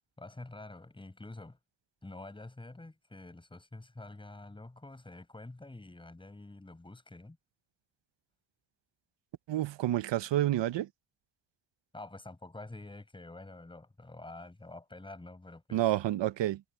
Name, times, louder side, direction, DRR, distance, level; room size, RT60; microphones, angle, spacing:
voice 1, 0.2-1.6 2.0-7.4 11.9-15.9, left 2 dB, 10° left, 6.1 m, -47 dB
voice 2, 9.5-10.9 15.7-16.6, right 13 dB, 85° right, 0.9 m, -29 dB
wide cardioid pair, 170°, 43 cm